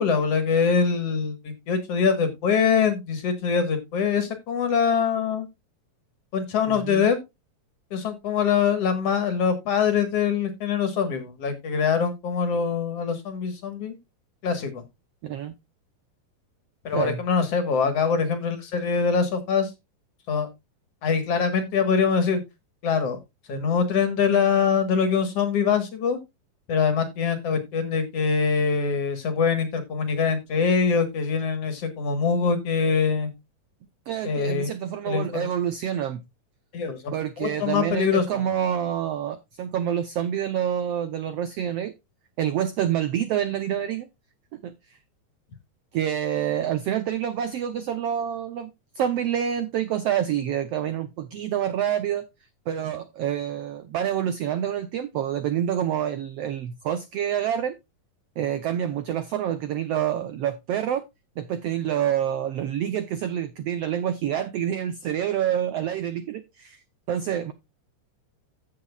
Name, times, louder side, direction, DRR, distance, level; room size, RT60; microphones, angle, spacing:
voice 1, 0.0-5.5 6.3-7.2 7.9-14.0 14.4-14.8 16.8-19.7 20.3-20.5 21.0-22.4 22.8-23.2 23.5-26.2 26.7-33.3 34.2-34.7 35.1-35.5 36.7-38.4, left 6 dB, 55° left, 2.2 m, -24 dB
voice 2, 6.7-7.1 15.2-15.5 16.9-17.2 34.1-36.2 37.1-41.9 42.4-44.1 44.5-44.7 45.9-48.7 48.9-52.2 52.7-57.7 58.4-61.0 61.4-66.8 67.1-67.5, right 10 dB, 80° right, 1.4 m, -27 dB
15.5 x 6.2 x 2.4 m
omnidirectional pair, 3.8 m